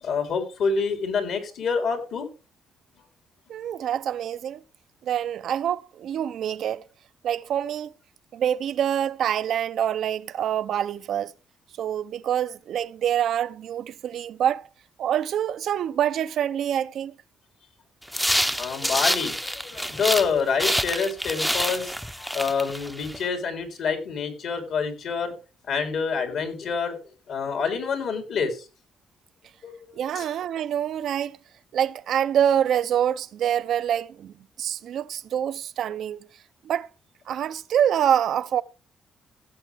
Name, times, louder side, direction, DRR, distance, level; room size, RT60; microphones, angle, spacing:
voice 1, 0.0-2.3 18.6-25.3 25.7-27.0 27.3-28.7 29.6-30.3, left 5 dB, 70° left, 3.9 m, -27 dB
voice 2, 3.5-4.6 5.0-6.8 7.2-7.9 8.3-11.3 11.8-14.7 15.0-17.1 29.9-31.4 31.7-34.3 34.6-36.2 36.6-36.9 37.3-38.6, right 9 dB, 70° right, 0.6 m, -26 dB
sound 1, 18.1-20.3 20.6-23.2, equal, ahead, 0.7 m, -27 dB
15.5 x 7.5 x 3.5 m
cardioid pair, 90°, 0 cm